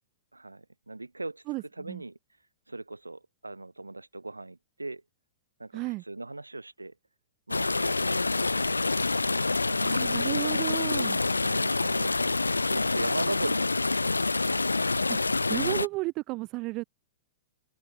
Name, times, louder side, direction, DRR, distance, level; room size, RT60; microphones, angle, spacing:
voice 1, 0.3-1.4 1.8-2.2 2.7-5.0 5.6-6.9 7.5-8.9 9.7-10.8 11.4-14.3, right 2 dB, 80° right, 3.1 m, -39 dB
voice 2, 1.5-2.0 5.7-6.0 9.7-11.2 15.1-16.8, right 22 dB, 35° right, 1.2 m, -33 dB
sound 1, 7.5-15.9, left 3 dB, 80° left, 0.4 m, -27 dB
open air
figure-of-eight pair, 100°, 0 cm